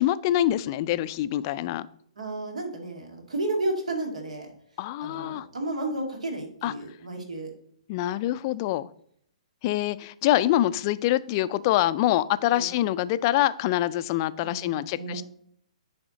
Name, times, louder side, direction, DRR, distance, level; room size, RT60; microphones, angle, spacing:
voice 1, 0.0-1.9 4.8-5.4 6.6-6.7 7.9-8.9 9.6-15.2, left 14 dB, 35° left, 0.3 m, -25 dB
voice 2, 2.2-4.5 5.0-7.5 12.5-12.7 14.4-15.2, right 2 dB, 80° right, 1.9 m, -32 dB
9.9 x 3.5 x 4.0 m
hypercardioid pair, 130°, 4 cm